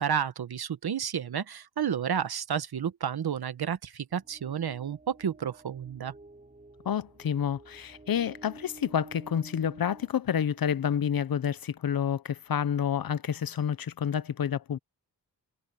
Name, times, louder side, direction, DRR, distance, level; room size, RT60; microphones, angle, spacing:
voice 1, 0.0-6.1, right 8 dB, 65° right, 1.1 m, -31 dB
sound 1, 4.1-11.0, right 2 dB, 20° right, 6.3 m, -52 dB
voice 2, 6.9-14.8, left 8 dB, 55° left, 0.7 m, -29 dB
wide cardioid pair, 140°, 41 cm